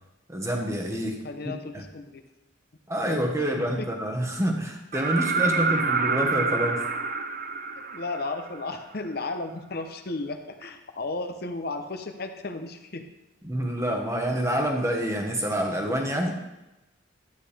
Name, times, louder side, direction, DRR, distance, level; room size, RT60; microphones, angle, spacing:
voice 1, 0.3-1.2 1.4-1.8 2.9-6.8 13.4-16.3, right 1 dB, 15° right, 2 dB, 1.2 m, -27 dB
voice 2, 1.2-2.2 3.0-3.9 5.2-5.6 7.7-13.1, left 3 dB, 55° left, 7 dB, 0.8 m, -35 dB
sound 1, 4.9-8.7 10.6-10.7, right 4 dB, 45° right, 0.5 m, -27 dB
11.5 x 9.1 x 3.4 m, 0.99 s
head